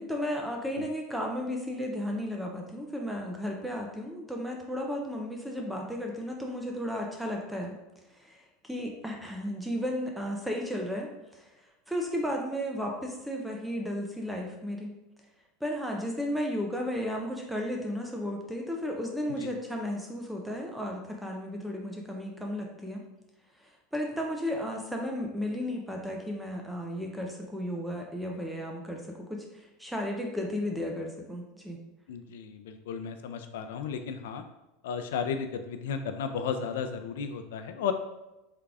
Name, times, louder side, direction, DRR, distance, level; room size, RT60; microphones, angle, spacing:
voice 1, 0.0-7.7 8.1-8.4 8.6-14.9 15.6-23.0 23.6-31.8, equal, ahead, 0 dB, 0.3 m, -34 dB
voice 2, 32.1-34.4 34.8-37.9, left 7 dB, 90° left, 8 dB, 0.4 m, -34 dB
3.7 x 2.3 x 3.3 m, 1.0 s
supercardioid pair, 165°, 0 cm